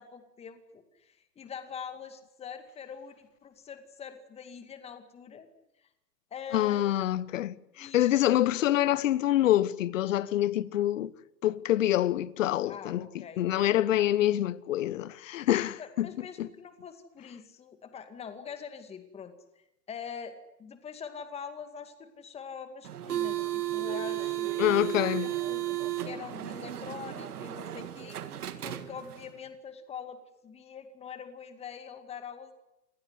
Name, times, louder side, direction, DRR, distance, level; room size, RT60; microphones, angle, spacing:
voice 1, 0.0-5.5 5.8-5.9 6.3-6.8 7.8-8.2 12.6-13.6 15.8-24.8 25.2-28.2 28.6-32.5, left 7 dB, 15° left, 2.2 m, -44 dB
voice 2, 6.5-11.1 11.4-16.1 16.4-16.5 24.6-25.3, left 13 dB, 50° left, 1.2 m, -26 dB
sound 1, 22.8-29.3, right 13 dB, 70° right, 2.5 m, -34 dB
28.0 x 19.5 x 9.6 m
hypercardioid pair, 140°, 48 cm